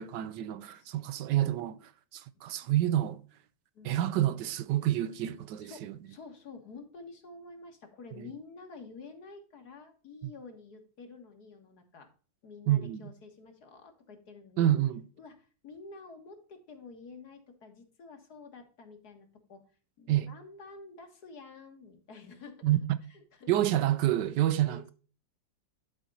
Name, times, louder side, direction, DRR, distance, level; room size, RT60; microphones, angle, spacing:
voice 1, 0.0-1.8 2.1-3.2 3.8-5.9 8.2-8.3 12.7-13.0 14.6-15.0 20.1-20.3 22.6-23.0 23.5-24.9, right 12 dB, 75° right, 1.2 m, -28 dB
voice 2, 5.6-12.1 12.4-14.7 15.2-19.6 20.0-22.8 23.1-23.5 24.5-24.9, left 4 dB, 60° left, 2.0 m, -49 dB
11.0 x 4.4 x 4.0 m
omnidirectional pair, 2.0 m